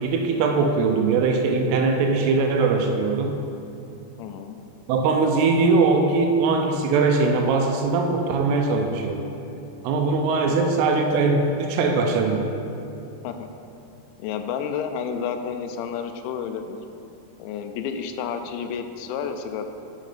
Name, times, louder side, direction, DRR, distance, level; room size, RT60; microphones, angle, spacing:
voice 1, 0.0-3.4 4.9-9.3 9.8-12.6, right 4 dB, 80° right, 4 dB, 2.5 m, -21 dB
voice 2, 4.2-4.6 10.4-10.6 13.2-13.5 14.2-16.8 17.4-19.7, left 7 dB, 90° left, 7 dB, 2.8 m, -30 dB
12.0 x 4.3 x 5.0 m, 2.8 s
omnidirectional pair, 5.1 m